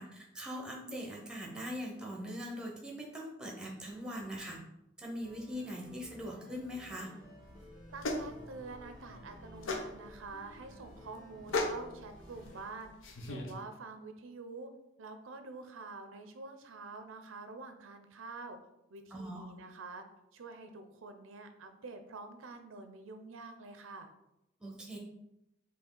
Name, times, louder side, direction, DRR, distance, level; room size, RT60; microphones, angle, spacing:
voice 1, 0.0-4.6 5.0-7.1 19.1-19.5 24.6-25.0, equal, 5° right, -1 dB, 0.8 m, -41 dB
sound 1, 5.2-12.6, equal, 40° left, 1.5 m, -55 dB
sound 2, 7.4-13.5, left 2 dB, 80° left, 0.7 m, -39 dB
voice 2, 7.9-14.7 15.0-18.6 18.9-20.0 20.3-24.1, right 3 dB, 80° right, 7 dB, 0.5 m, -47 dB
4.3 x 3.2 x 3.8 m, 0.86 s
head